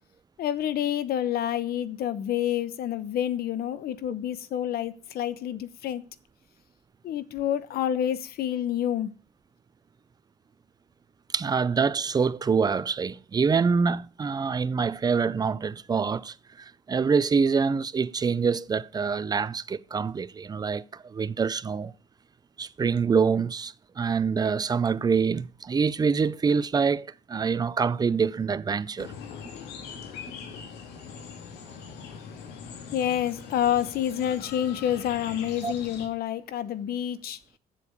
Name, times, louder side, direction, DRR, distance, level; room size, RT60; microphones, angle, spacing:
voice 1, 0.4-6.0 7.0-9.1 32.9-37.4, left 10 dB, 65° left, 1.0 m, -28 dB
voice 2, 11.3-21.9 22.6-29.1 35.6-35.7, right 5 dB, 25° right, 0.5 m, -25 dB
sound 1, 29.0-36.1, left 6 dB, 85° left, 2.3 m, -42 dB
7.6 x 7.0 x 8.3 m
cardioid pair, 110°, 17 cm